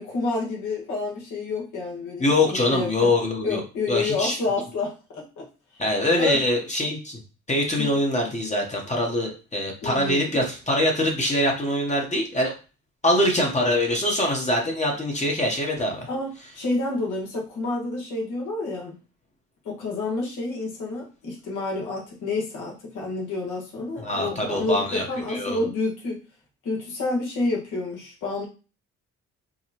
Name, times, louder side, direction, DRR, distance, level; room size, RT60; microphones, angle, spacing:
voice 1, 0.0-3.1 3.4-5.4 6.2-6.4 7.8-7.9 9.8-10.4 16.1-19.0 19.6-26.2 26.6-28.4, left 3 dB, 80° left, -2 dB, 1.6 m, -29 dB
voice 2, 2.2-3.6 3.9-4.4 5.8-7.2 7.5-12.5 13.0-16.1 24.0-25.6, left 1 dB, 25° left, 0 dB, 1.0 m, -24 dB
4.8 x 2.2 x 2.9 m, 0.34 s
cardioid pair, 90°, 30 cm